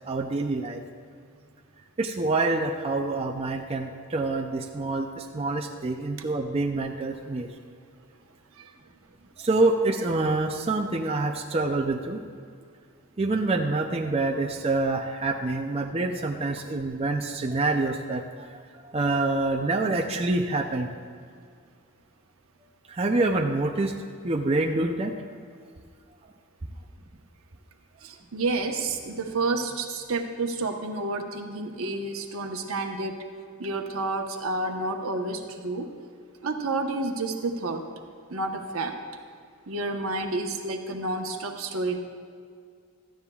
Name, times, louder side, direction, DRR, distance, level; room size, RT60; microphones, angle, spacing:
voice 1, 0.0-0.8 2.0-7.5 9.4-12.2 13.2-18.5 18.9-20.9 22.9-23.9 24.2-25.1, right 2 dB, 30° right, 2 dB, 0.5 m, -26 dB
voice 2, 28.0-33.2 33.6-35.9 36.4-37.8 38.3-38.9 39.7-42.0, right 2 dB, 70° right, 4 dB, 1.1 m, -30 dB
17.0 x 13.0 x 2.4 m, 2.2 s
head